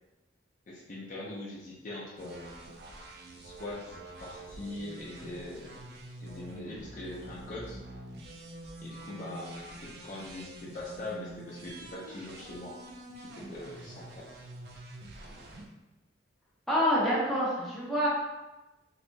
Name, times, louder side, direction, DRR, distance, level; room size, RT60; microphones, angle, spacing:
voice 1, 0.7-2.6 3.4-5.8 6.2-7.8 8.8-12.7 13.2-14.2, left 2 dB, 40° left, -5 dB, 0.5 m, -42 dB
sound 1, 2.2-15.7, right 1 dB, 55° right, 0.5 m, -47 dB
voice 2, 16.7-18.1, equal, ahead, -9 dB, 0.9 m, -27 dB
3.2 x 2.9 x 2.6 m, 1.0 s
head